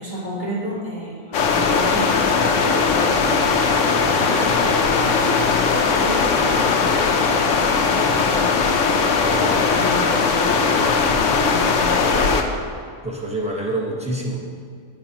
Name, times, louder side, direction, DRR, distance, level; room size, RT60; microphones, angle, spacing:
voice 1, 0.0-8.4 9.2-9.5 9.7-12.1, equal, 35° right, -5 dB, 1.9 m, -32 dB
sound 1, 1.3-12.4, left 5 dB, 90° left, 1.1 m, -19 dB
voice 2, 9.3-9.6 13.0-14.4, right 2 dB, 5° right, -2 dB, 1.2 m, -26 dB
17.5 x 5.9 x 2.9 m, 2.1 s
omnidirectional pair, 1.2 m